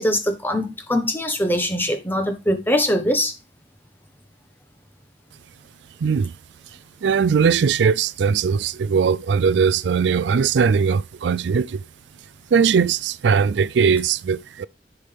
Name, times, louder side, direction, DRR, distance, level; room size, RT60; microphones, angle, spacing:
voice 1, 0.0-3.3, equal, 10° left, 1.2 m, -22 dB
voice 2, 6.0-6.3 7.0-11.8 12.5-14.7, right 6 dB, 75° right, 0.4 m, -19 dB
9.7 x 5.9 x 3.4 m
head